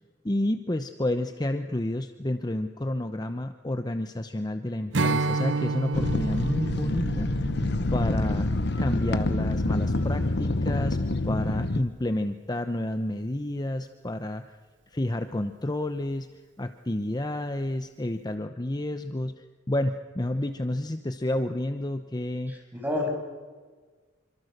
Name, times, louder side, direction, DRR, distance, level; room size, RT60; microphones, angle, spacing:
voice 1, 0.2-7.3 7.9-8.5 8.8-11.0 11.2-14.5 14.9-16.3 16.6-19.3 19.7-22.5, left 1 dB, 20° left, 8 dB, 0.9 m, -30 dB
Strum, 4.9-10.4, right 3 dB, 75° right, 1.0 m, -31 dB
sound 1, 5.9-11.8, left 2 dB, 65° left, 1.1 m, -27 dB
voice 2, 22.5-23.1, left 2 dB, 10° right, 0 dB, 7.1 m, -30 dB
27.0 x 25.0 x 6.7 m, 1.4 s
head